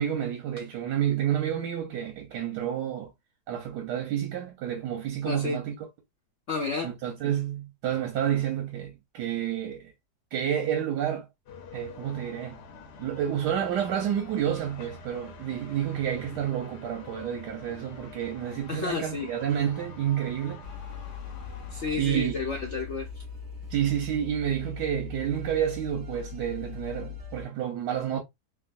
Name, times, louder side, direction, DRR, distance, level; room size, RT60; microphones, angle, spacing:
voice 1, 0.0-3.1 3.5-5.7 6.8-9.9 10.3-11.3 11.7-12.6 13.0-20.6 22.0-22.3 23.7-28.2, right 10 dB, 85° right, 1.3 m, -29 dB
voice 2, 5.2-5.6 6.5-6.9 18.7-19.3 21.7-23.2, left 4 dB, 60° left, 0.8 m, -31 dB
sound 1, 11.5-22.0, left 4 dB, 85° left, 1.4 m, -46 dB
sound 2, 20.6-27.4, left 6 dB, 50° right, 1.1 m, -40 dB
3.6 x 2.3 x 2.4 m
omnidirectional pair, 1.8 m